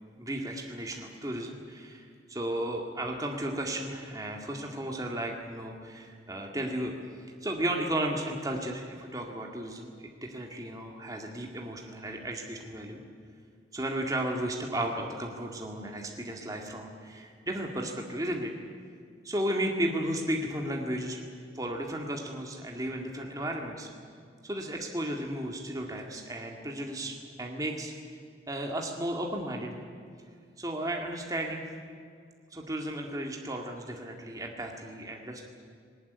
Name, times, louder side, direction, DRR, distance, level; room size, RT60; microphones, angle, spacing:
voice 1, 0.2-6.9 7.4-13.0 13.7-18.5 19.2-21.2 21.5-23.9 24.4-27.9 28.5-29.8 30.6-31.6 32.5-35.5, right 1 dB, 20° right, 1 dB, 2.1 m, -34 dB
20.0 x 19.5 x 9.6 m, 2.1 s
head